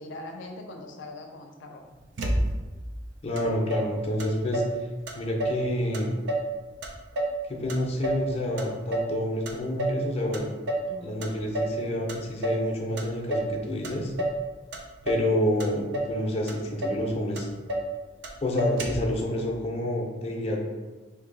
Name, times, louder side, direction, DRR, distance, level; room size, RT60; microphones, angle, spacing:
voice 1, 0.0-1.8 10.9-11.2, left 2 dB, 85° left, 2 dB, 0.5 m, -41 dB
Motor vehicle (road), 2.2-2.8 3.4-3.5 3.7-4.8 5.1-5.7 5.9-6.5 6.8-8.3 8.6-9.2 9.5-10.0 10.3-10.9 11.2-11.8 12.1-12.7 13.0-13.6 13.8-14.4 14.7-15.3 15.6-16.2 16.5-16.6 16.8-17.1 17.4-17.9 18.2-18.3 18.6-19.1, right 1 dB, 80° right, 0.5 m, -29 dB
voice 2, 3.2-4.6 5.1-6.2 7.5-10.5 11.0-14.1 15.0-17.5 18.4-20.6, left 1 dB, 35° left, -1 dB, 0.5 m, -28 dB
2.8 x 2.6 x 3.9 m, 1.2 s
head